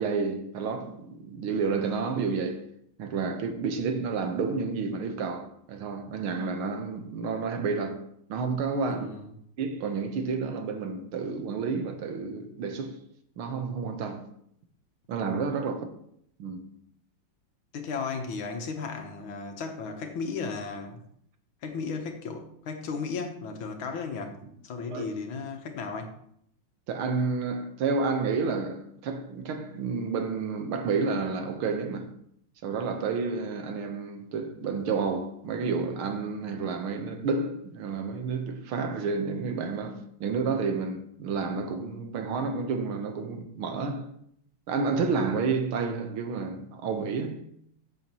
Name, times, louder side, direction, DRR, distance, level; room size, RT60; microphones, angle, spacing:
voice 1, 0.0-2.6 3.0-8.0 8.3-9.1 9.6-13.0 13.4-14.2 15.1-15.9 16.4-16.7 24.9-25.1 26.9-32.1 32.6-44.1 44.7-47.4, right 4 dB, 85° right, 2.0 m, -30 dB
voice 2, 8.9-9.4 15.7-15.8 17.7-21.0 21.6-24.4 24.6-26.2, left 4 dB, 75° left, 1.9 m, -35 dB
14.0 x 7.0 x 3.0 m
omnidirectional pair, 2.3 m